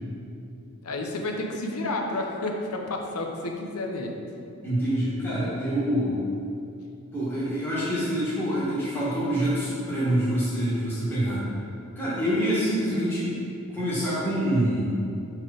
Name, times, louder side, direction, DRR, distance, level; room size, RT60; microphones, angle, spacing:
voice 1, 0.8-4.2, left 2 dB, 85° left, 2 dB, 0.8 m, -30 dB
voice 2, 4.6-6.2 7.1-11.4 11.9-13.4 13.7-14.9, equal, 10° left, -11 dB, 1.5 m, -26 dB
5.9 x 4.6 x 4.9 m, 2.6 s
head